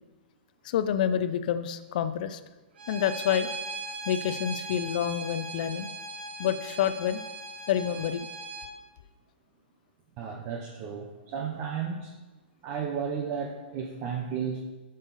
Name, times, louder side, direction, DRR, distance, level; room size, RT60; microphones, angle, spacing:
voice 1, 0.6-2.4 2.9-3.5 4.1-5.9 6.4-7.2 7.7-8.3, left 9 dB, 50° left, 12 dB, 0.4 m, -28 dB
Bowed string instrument, 2.8-8.7, right 2 dB, 75° right, 1.1 m, -39 dB
voice 2, 10.2-12.1 12.6-14.6, right 7 dB, 30° right, 2 dB, 0.8 m, -33 dB
7.6 x 6.5 x 4.0 m, 1.1 s
hypercardioid pair, 155°, 6 cm